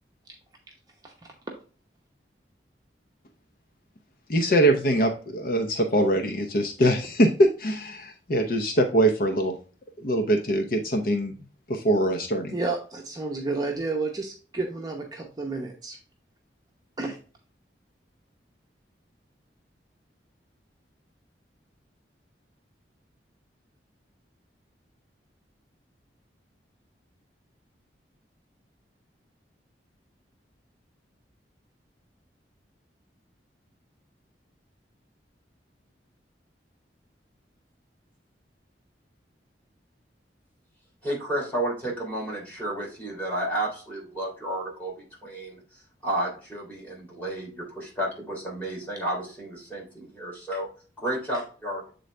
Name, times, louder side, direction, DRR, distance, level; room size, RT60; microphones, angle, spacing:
voice 1, 4.3-9.6 10.0-11.3 11.7-12.5, right 1 dB, 55° left, 4 dB, 0.7 m, -23 dB
voice 2, 12.5-16.0 17.0-17.2, right 3 dB, 20° right, 0 dB, 0.8 m, -31 dB
voice 3, 41.0-45.6 46.0-50.7 51.0-51.9, right 1 dB, 10° left, -4 dB, 3.1 m, -32 dB
7.8 x 3.9 x 3.2 m, 0.38 s
head